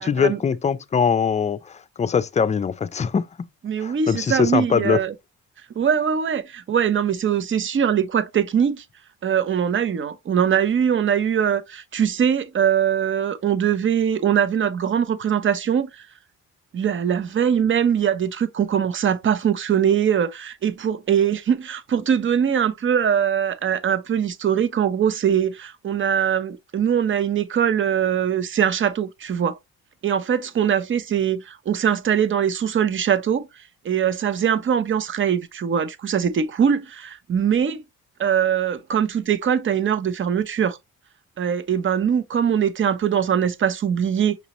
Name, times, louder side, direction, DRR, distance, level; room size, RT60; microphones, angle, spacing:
voice 1, 0.0-3.5 3.8-5.0, left 6 dB, 25° left, 0.3 m, -22 dB
voice 2, 3.6-5.1 5.8-8.8 9.2-16.1 16.7-29.6 30.0-33.5 33.8-37.8 38.2-40.8 41.4-44.4, right 8 dB, 40° right, 0.6 m, -22 dB
6.0 x 2.8 x 2.9 m
cardioid pair, 100°, 31 cm